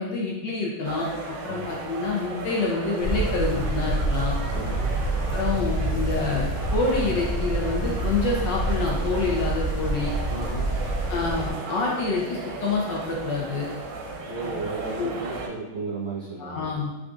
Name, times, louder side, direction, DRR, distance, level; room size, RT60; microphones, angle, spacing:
voice 1, 0.0-4.4 5.3-10.1 11.1-13.7 14.4-14.5 14.8-15.1 16.4-16.9, left 4 dB, 70° left, -3 dB, 1.2 m, -27 dB
sound 1, 0.8-15.5, right 3 dB, 75° right, 1.3 m, -35 dB
sound 2, 3.0-11.5, right 1 dB, 85° left, 0.8 m, -27 dB
voice 2, 4.5-4.9 10.3-10.7 14.3-16.7, right 3 dB, 40° right, -11 dB, 1.0 m, -34 dB
3.7 x 3.7 x 2.3 m, 1.1 s
omnidirectional pair, 2.2 m